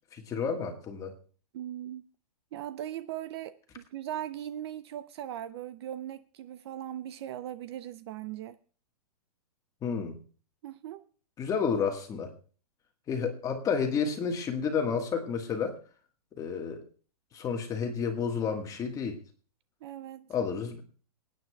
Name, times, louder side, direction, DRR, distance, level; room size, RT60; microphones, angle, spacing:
voice 1, 0.1-1.1 9.8-10.2 11.4-12.3 13.1-15.8 16.4-16.8 17.3-19.2 20.3-20.8, left 6 dB, 15° left, 1.5 m, -30 dB
voice 2, 1.5-2.0 2.5-8.6 10.6-11.0 19.8-20.3, right 11 dB, 40° right, 0.5 m, -39 dB
26.0 x 9.2 x 2.3 m
hypercardioid pair, 150°, 20 cm